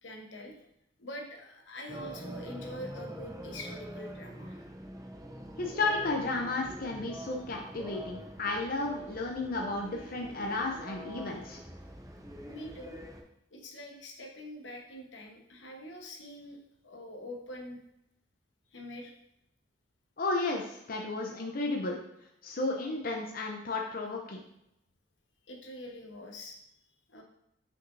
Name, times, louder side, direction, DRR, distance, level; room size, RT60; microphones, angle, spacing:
voice 1, 0.0-0.6 1.0-4.6 12.5-13.0 13.5-16.6 16.8-17.8 18.7-19.1 25.5-26.6 27.1-27.2, left 1 dB, 90° left, 1 dB, 1.2 m, -44 dB
sound 1, 1.9-13.2, right 1 dB, 20° right, 0.7 m, -45 dB
voice 2, 5.6-11.6 20.2-22.0 22.4-24.4, left 2 dB, 50° left, 1 dB, 0.7 m, -33 dB
5.9 x 5.9 x 2.7 m, 0.81 s
head